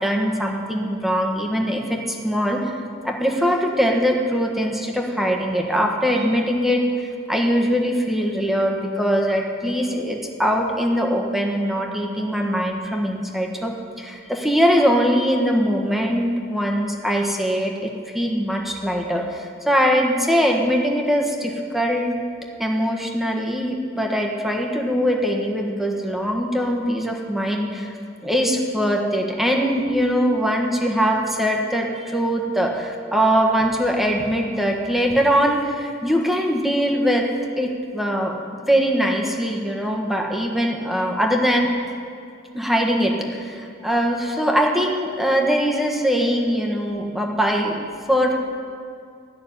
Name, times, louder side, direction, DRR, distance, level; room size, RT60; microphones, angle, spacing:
voice 1, 0.0-2.8 3.0-22.2 22.6-27.9 28.2-37.3 37.6-38.3 38.7-41.7 42.5-48.3, equal, ahead, 1 dB, 1.4 m, -22 dB
14.0 x 6.4 x 9.9 m, 2.3 s
head